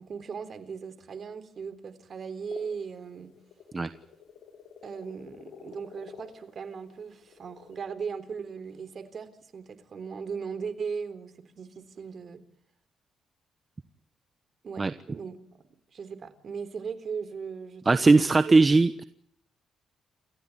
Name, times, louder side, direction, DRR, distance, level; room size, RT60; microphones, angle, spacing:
voice 1, 0.0-3.3 4.8-12.4 14.6-15.4 15.9-18.6, right 6 dB, 50° right, 11 dB, 3.7 m, -38 dB
sound 1, 2.5-7.9, left 6 dB, 70° left, 7.1 m, -51 dB
voice 2, 17.9-19.0, right 3 dB, 25° right, 12 dB, 1.1 m, -19 dB
29.0 x 15.5 x 9.6 m, 0.70 s
cardioid pair, 90°, 0 cm